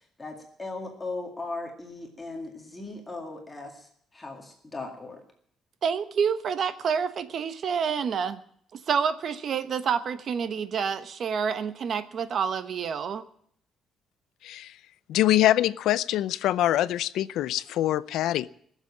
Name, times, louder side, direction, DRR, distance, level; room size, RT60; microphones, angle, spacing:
voice 1, 0.2-5.2, left 3 dB, 15° left, 2 dB, 2.1 m, -38 dB
voice 2, 5.8-8.4 8.7-13.2, right 6 dB, 50° right, 11 dB, 1.1 m, -28 dB
voice 3, 14.4-14.8 15.1-18.5, left 13 dB, 85° left, 17 dB, 0.5 m, -24 dB
21.0 x 7.4 x 8.5 m, 0.66 s
cardioid pair, 150°, 0 cm